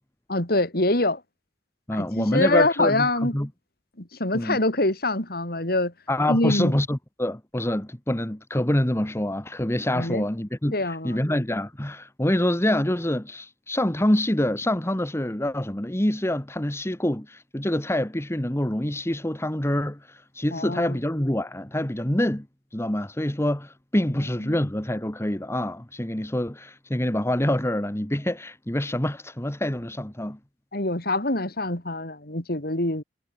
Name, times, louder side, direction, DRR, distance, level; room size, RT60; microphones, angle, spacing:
voice 1, 0.3-1.2 1.9-3.4 4.0-5.9 6.3-6.7 9.9-10.3 10.7-11.2 20.5-21.0 24.5-24.6 30.7-33.0, left 2 dB, 60° left, 4.2 m, -24 dB
voice 2, 1.9-3.5 4.3-4.6 6.1-22.5 22.7-30.4, left 1 dB, 15° left, 1.4 m, -26 dB
head